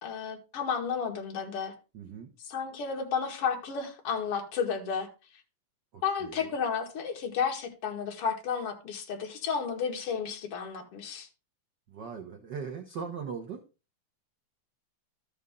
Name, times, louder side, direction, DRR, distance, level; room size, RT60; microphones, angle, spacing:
voice 1, 0.0-1.7 2.5-5.1 6.0-11.3, left 6 dB, 55° left, 2.3 m, -32 dB
voice 2, 1.9-2.3 5.9-6.5 11.9-13.6, right 6 dB, 75° right, 1.0 m, -39 dB
13.0 x 5.4 x 3.6 m
omnidirectional pair, 3.5 m